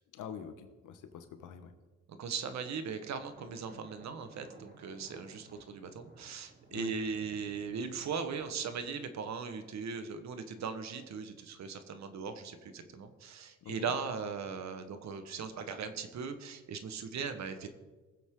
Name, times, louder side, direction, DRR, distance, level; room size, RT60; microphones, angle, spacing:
voice 1, 0.1-1.7 6.7-6.9 13.6-13.9, left 7 dB, 85° left, 8 dB, 1.2 m, -45 dB
voice 2, 2.1-17.7, right 5 dB, 65° right, 9 dB, 1.4 m, -39 dB
sound 1, 3.1-8.9, right 2 dB, 35° right, 2.5 m, -58 dB
20.0 x 7.7 x 3.8 m, 1.3 s
cardioid pair, 90°, 30 cm